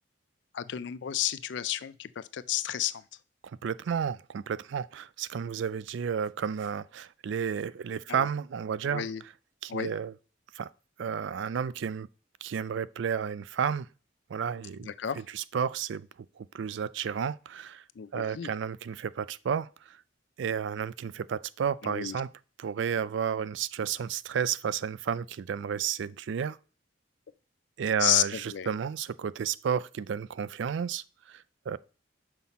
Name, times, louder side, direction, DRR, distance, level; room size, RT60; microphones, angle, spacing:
voice 1, 0.5-3.0 8.1-8.3 8.8-9.2 9.7-9.9 14.9-15.2 18.0-18.5 21.8-22.2 28.0-28.7, left 11 dB, 65° left, 0.4 m, -31 dB
voice 2, 3.4-9.0 9.6-10.1 10.5-10.7 11.0-12.1 12.4-13.9 14.3-14.9 15.3-16.1 16.4-17.8 18.1-20.0 20.4-22.3 22.6-26.6 27.8-31.8, right 7 dB, 70° right, 0.3 m, -32 dB
5.8 x 5.7 x 4.1 m
head